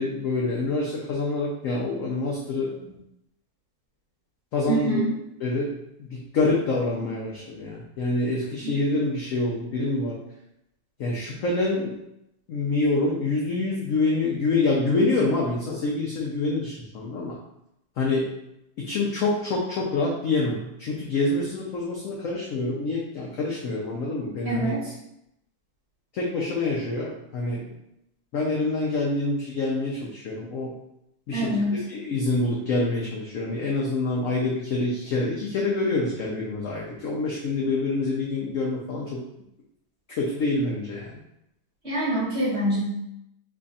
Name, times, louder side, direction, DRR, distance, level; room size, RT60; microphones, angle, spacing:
voice 1, 0.0-2.7 4.5-5.0 5.4-5.7 6.1-10.2 11.0-11.9 12.5-17.4 18.0-18.3 18.8-24.7 26.1-27.7 28.3-30.7 31.3-31.5 31.9-39.2 40.2-41.1, left 2 dB, 70° left, -3 dB, 0.7 m, -26 dB
voice 2, 4.7-5.1 24.4-24.9 31.3-31.8 41.8-42.8, right 1 dB, 40° right, -8 dB, 1.3 m, -25 dB
3.2 x 2.3 x 3.9 m, 0.83 s
omnidirectional pair, 2.0 m